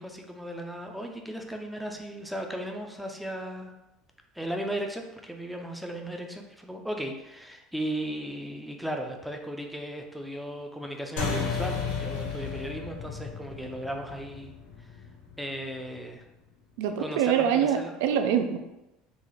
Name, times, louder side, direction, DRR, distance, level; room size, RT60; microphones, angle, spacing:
voice 1, 0.0-3.7 4.3-14.9 15.4-16.2 17.0-18.0, right 1 dB, ahead, 3 dB, 0.3 m, -36 dB
sound 1, 11.2-16.0, left 5 dB, 90° left, 0.8 m, -34 dB
voice 2, 16.8-18.6, right 8 dB, 80° right, 7 dB, 0.3 m, -25 dB
3.8 x 2.4 x 3.1 m, 0.95 s
cardioid pair, 155°, 0 cm